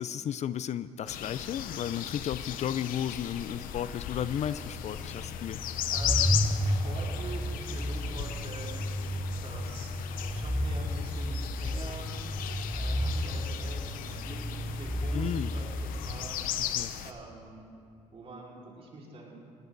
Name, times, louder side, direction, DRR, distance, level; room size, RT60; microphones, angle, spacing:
voice 1, 0.0-5.6 15.1-15.5 16.8-16.9, left 9 dB, 55° left, 15 dB, 0.5 m, -34 dB
sound 1, 1.1-17.1, left 11 dB, 80° left, 0.9 m, -37 dB
sound 2, 4.2-16.3, equal, ahead, 0.8 m, -33 dB
voice 2, 5.5-8.9 9.4-12.1 12.7-16.6 17.0-17.6 18.1-19.4, right 3 dB, 45° right, -4 dB, 4.9 m, -45 dB
20.5 x 17.5 x 4.0 m, 2.4 s
cardioid pair, 90°, 14 cm